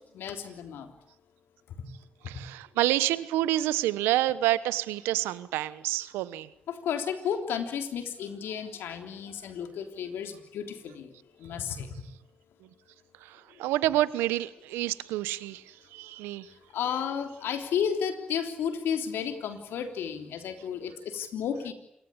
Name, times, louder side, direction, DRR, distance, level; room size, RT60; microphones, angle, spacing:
voice 1, 0.1-0.9 1.8-1.9 6.7-11.1 11.4-11.9 16.7-21.7, left 8 dB, 80° left, 7 dB, 3.4 m, -32 dB
voice 2, 2.2-6.5 13.2-16.5, right 15 dB, 90° right, 17 dB, 1.1 m, -28 dB
27.5 x 22.5 x 8.7 m, 0.78 s
supercardioid pair, 45°, 4 cm